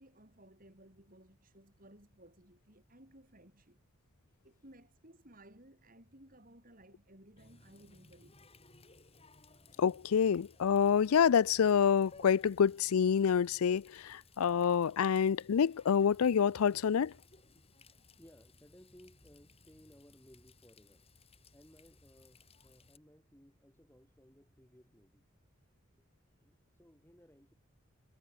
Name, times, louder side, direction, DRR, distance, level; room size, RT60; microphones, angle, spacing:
voice 1, 0.0-3.8 4.4-8.3, right 1 dB, 40° right, 7.4 m, -59 dB
Water tap faucet, 7.4-23.0, left 3 dB, 30° left, 6.6 m, -61 dB
voice 2, 9.8-17.1, left 7 dB, 85° left, 0.4 m, -27 dB
voice 3, 18.2-21.1 21.5-25.3 25.5-25.6 26.0-27.5, equal, 10° left, 3.5 m, -61 dB
head